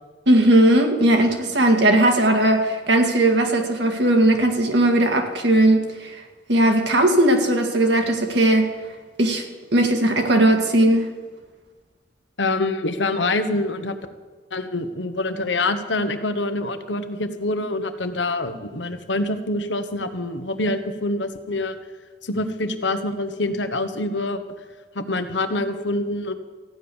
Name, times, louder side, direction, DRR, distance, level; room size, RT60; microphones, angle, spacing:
voice 1, 0.3-6.2 6.5-8.7 9.2-9.4 9.7-11.1, right 1 dB, 70° right, 4 dB, 2.1 m, -18 dB
voice 2, 12.4-14.0 14.5-21.8 22.2-24.4 24.9-26.3, left 2 dB, 80° left, 8 dB, 1.2 m, -25 dB
15.0 x 9.9 x 7.1 m, 1.4 s
head